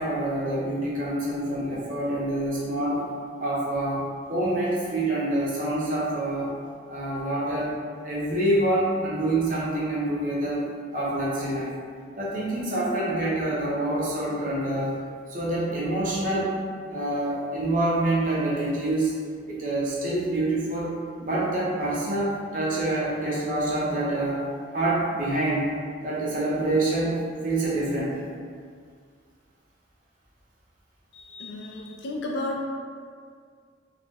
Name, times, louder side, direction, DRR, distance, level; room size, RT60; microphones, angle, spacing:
voice 1, 0.0-3.0 3.4-6.5 6.9-7.7 8.0-10.7 10.9-11.7 12.2-14.9 15.3-16.5 16.9-19.1 19.5-20.9 21.2-24.5 24.7-25.7 26.0-27.2 27.4-28.2, right 1 dB, 45° right, -6 dB, 0.6 m, -26 dB
voice 2, 31.1-32.6, left 2 dB, 65° left, -1 dB, 0.4 m, -33 dB
2.3 x 2.1 x 3.4 m, 2.1 s
head